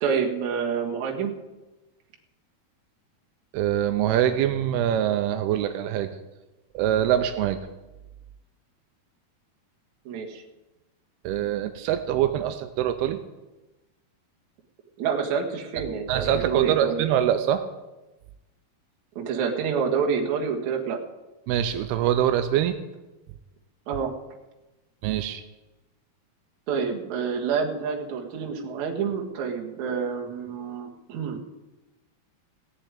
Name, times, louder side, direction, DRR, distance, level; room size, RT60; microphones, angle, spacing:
voice 1, 0.0-1.4 10.1-10.4 15.0-17.0 19.2-21.0 23.9-24.1 26.7-31.4, right 6 dB, 55° right, 1 dB, 2.6 m, -28 dB
voice 2, 3.5-6.1 6.7-7.6 11.2-13.2 16.1-17.6 21.5-22.8 25.0-25.4, right 10 dB, 85° right, 9 dB, 2.7 m, -24 dB
17.0 x 7.4 x 9.6 m, 1.1 s
omnidirectional pair, 4.5 m